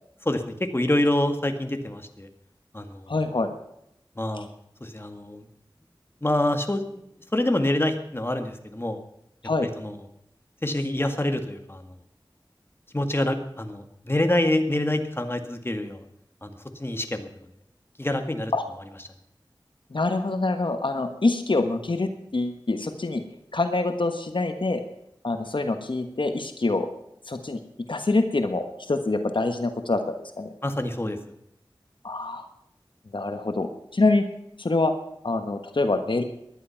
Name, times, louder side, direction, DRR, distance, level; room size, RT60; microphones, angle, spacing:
voice 1, 0.3-2.3 2.7-3.1 4.2-4.5 4.8-5.4 6.2-6.8 7.3-9.0 9.8-10.0 10.6-11.8 12.9-16.0 16.4-17.3 18.0-18.5 30.6-31.2, left 1 dB, 25° left, 6 dB, 1.9 m, -26 dB
voice 2, 3.1-3.5 9.4-9.7 18.5-18.7 19.9-23.2 23.5-24.8 25.2-26.9 27.3-27.6 27.9-30.5 32.0-32.4 33.1-34.2 34.6-34.9 35.2-36.2, left 2 dB, 70° left, 7 dB, 1.4 m, -25 dB
19.0 x 11.5 x 5.8 m, 0.77 s
wide cardioid pair, 55°, 9 cm